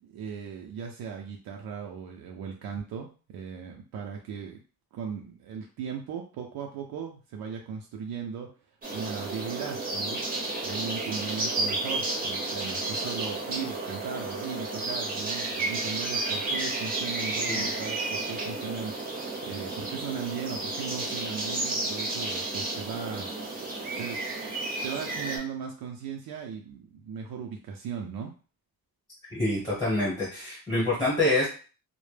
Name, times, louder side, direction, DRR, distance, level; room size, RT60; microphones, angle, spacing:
voice 1, 0.0-4.6 4.9-8.5 8.9-10.2 10.6-23.3 24.0-24.2 24.8-28.3, right 6 dB, 80° right, 1 dB, 0.5 m, -37 dB
sound 1, 8.8-25.4, right 2 dB, 25° right, 0.6 m, -32 dB
voice 2, 29.3-31.5, left 2 dB, 10° left, -6 dB, 0.8 m, -26 dB
2.1 x 2.0 x 3.1 m, 0.37 s
wide cardioid pair, 170°, 36 cm